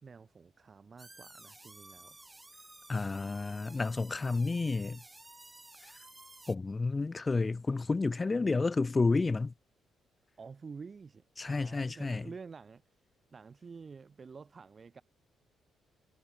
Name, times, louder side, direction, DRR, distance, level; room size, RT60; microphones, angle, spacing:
voice 1, 0.0-2.2 10.4-12.8 13.3-15.0, right 5 dB, 35° right, 5.8 m, -49 dB
sound 1, 1.0-6.5, right 2 dB, 15° right, 3.6 m, -54 dB
voice 2, 2.9-5.0 6.5-9.5 11.4-12.2, left 3 dB, 25° left, 1.2 m, -30 dB
cardioid pair, 90°, 0 cm